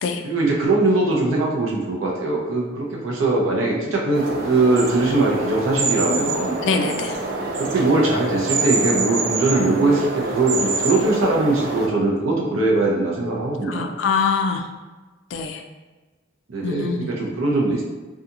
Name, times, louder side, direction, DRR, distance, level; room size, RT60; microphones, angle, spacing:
voice 1, 0.2-6.6 7.6-13.9 16.5-17.8, right 2 dB, 90° right, -2 dB, 0.6 m, -21 dB
sound 1, 4.1-11.9, right 3 dB, 50° right, 0.4 m, -26 dB
voice 2, 6.6-7.2 13.7-14.6 15.3-15.6 16.6-17.1, left 5 dB, 65° left, 6 dB, 0.3 m, -23 dB
2.7 x 2.4 x 2.5 m, 1.2 s
head